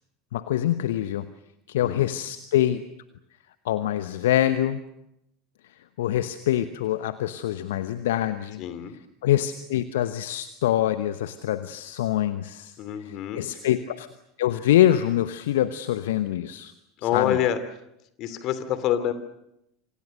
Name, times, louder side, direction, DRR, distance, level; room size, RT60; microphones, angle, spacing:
voice 1, 0.3-1.3 1.7-2.8 3.6-4.8 6.0-8.6 9.2-12.7 13.4-14.1 14.4-16.7 17.1-17.4, left 12 dB, 70° left, 12 dB, 1.0 m, -24 dB
voice 2, 1.7-2.1 8.6-9.0 12.8-13.7 17.0-17.6 18.2-19.1, left 10 dB, 50° left, 12 dB, 2.8 m, -27 dB
27.0 x 26.5 x 6.6 m, 0.83 s
figure-of-eight pair, 75°, 0 cm